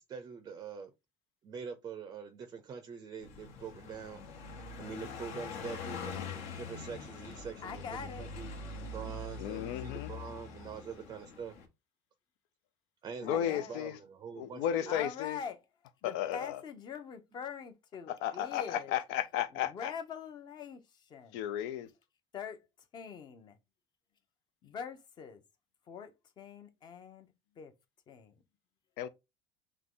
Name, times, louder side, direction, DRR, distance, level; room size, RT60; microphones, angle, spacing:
voice 1, 0.1-0.9 1.4-4.2 4.8-6.2 6.5-7.9 8.2-8.5 8.9-11.5 13.0-15.0, right 6 dB, 30° right, 0.5 m, -44 dB
Car passing by, 3.2-11.7, left 4 dB, 65° left, 1.2 m, -43 dB
voice 2, 7.6-8.3 13.2-13.9 14.9-15.6 16.0-19.0 19.5-21.5 22.3-22.6 22.9-23.6 24.6-25.4 25.9-27.7 28.1-28.4, left 6 dB, 35° left, 0.8 m, -44 dB
voice 3, 9.4-10.2 13.2-14.0 14.4-15.4 16.0-16.6 18.1-19.9 21.3-21.9 29.0-29.1, left 11 dB, 85° left, 0.6 m, -34 dB
3.7 x 2.9 x 3.7 m
cardioid pair, 150°, 13 cm